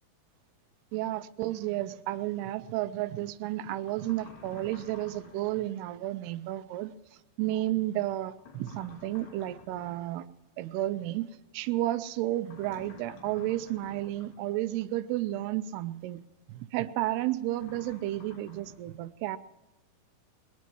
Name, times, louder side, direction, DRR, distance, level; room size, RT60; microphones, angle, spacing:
voice 1, 0.9-6.9 7.4-10.3 10.6-19.4, right 15 dB, 85° right, 13 dB, 2.8 m, -32 dB
sound 1, 3.9-5.7 8.4-10.0 12.4-14.4 17.5-18.8, left 3 dB, 85° left, 5.1 m, -51 dB
21.0 x 21.0 x 3.1 m, 1.1 s
omnidirectional pair, 4.6 m